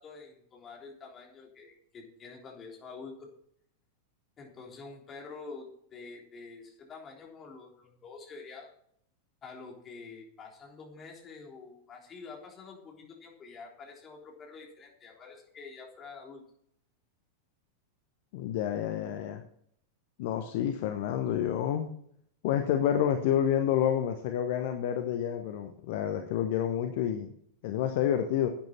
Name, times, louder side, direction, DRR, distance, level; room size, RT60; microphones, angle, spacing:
voice 1, 0.0-3.3 4.4-8.7 9.4-16.4, left 4 dB, 25° left, -1 dB, 3.5 m, -47 dB
voice 2, 18.3-19.4 20.2-21.9 22.4-27.3 27.6-28.5, left 10 dB, 50° left, 6 dB, 1.0 m, -29 dB
11.5 x 9.1 x 4.3 m, 0.68 s
figure-of-eight pair, 90°, 0 cm